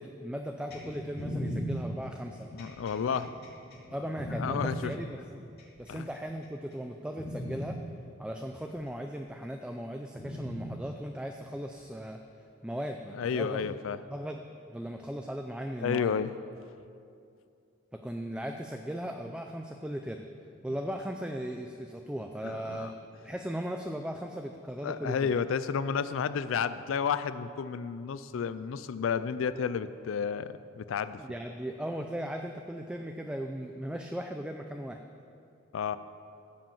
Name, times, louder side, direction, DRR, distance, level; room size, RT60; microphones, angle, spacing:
voice 1, 0.0-2.5 3.9-5.5 5.8-7.8 8.2-12.2 12.6-13.8 14.1-14.4 14.7-16.1 17.9-20.2 20.6-22.9 23.2-25.3 31.2-35.0, equal, 5° right, 4 dB, 0.4 m, -37 dB
sound 1, 0.7-4.6 5.6-6.2 6.7-6.9 7.2-7.6 8.8-8.9 10.2-10.6 11.8-11.9, equal, 55° left, 2.5 m, -37 dB
voice 2, 2.5-3.3 4.4-4.9 5.9-6.1 13.1-14.0 15.8-16.3 22.4-22.9 24.8-31.2 35.7-36.0, left 6 dB, 80° left, 13 dB, 0.4 m, -31 dB
15.0 x 5.2 x 7.2 m, 2.5 s
head